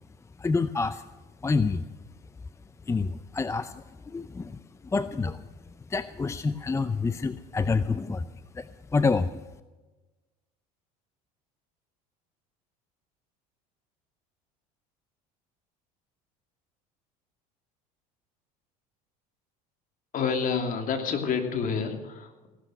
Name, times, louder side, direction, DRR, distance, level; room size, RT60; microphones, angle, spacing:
voice 1, 0.4-1.0 1.4-1.9 2.9-5.5 5.9-9.4, left 4 dB, 15° left, 14 dB, 0.6 m, -28 dB
voice 2, 20.1-22.5, left 6 dB, 45° left, 5 dB, 3.0 m, -28 dB
16.5 x 12.5 x 6.6 m, 1.2 s
supercardioid pair, 90°, 18 cm